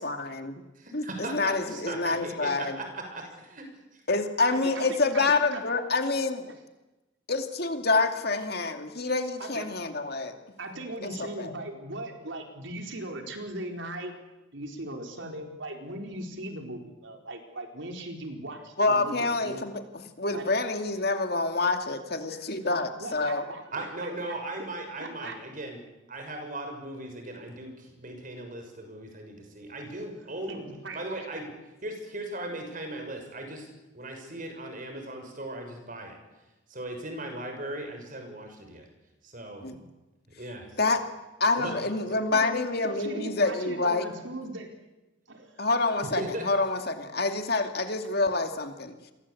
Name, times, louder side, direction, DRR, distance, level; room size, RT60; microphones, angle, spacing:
voice 1, 0.0-0.5 0.9-2.8 4.1-6.5 7.3-10.3 11.0-11.5 18.8-23.4 39.6-39.8 40.8-41.0 41.4-44.0 45.6-48.9, left 3 dB, 50° left, 6 dB, 2.5 m, -27 dB
voice 2, 1.0-3.7 3.9-4.0 23.7-25.8 26.1-30.6 30.9-31.5 31.8-33.7 33.9-36.2 36.7-38.8 39.2-39.6 40.4-40.7 41.6-41.7 46.2-46.4, right 1 dB, 40° right, 4 dB, 6.7 m, -38 dB
voice 3, 4.5-5.6 9.4-9.7 10.6-14.1 14.5-19.8 20.3-20.5 22.3-22.4 23.0-24.3 25.0-25.4 30.0-30.1 30.5-31.3 42.3-42.5 42.8-44.7 45.3-45.7, right 1 dB, 65° right, 4 dB, 4.4 m, -39 dB
29.0 x 23.5 x 8.6 m, 1.1 s
head